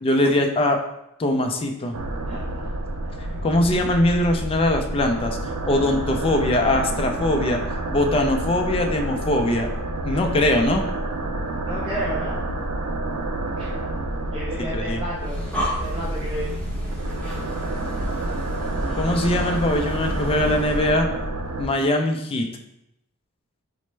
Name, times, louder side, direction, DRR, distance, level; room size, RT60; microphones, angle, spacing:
voice 1, 0.0-0.8 1.2-2.0 3.4-5.4 5.7-7.6 7.9-9.7 10.0-10.8 14.7-15.0 19.0-21.1 21.6-22.5, left 1 dB, 25° left, 4 dB, 0.3 m, -21 dB
sound 1, 1.9-21.7, right 2 dB, 75° right, 0.4 m, -29 dB
voice 2, 11.6-12.4 13.6-13.8 14.3-15.4 15.7-16.5 16.8-17.0, equal, 25° right, -7 dB, 0.5 m, -32 dB
Breathing, 15.1-20.9, equal, 5° left, 0.8 m, -32 dB
4.3 x 2.0 x 3.1 m, 0.84 s
head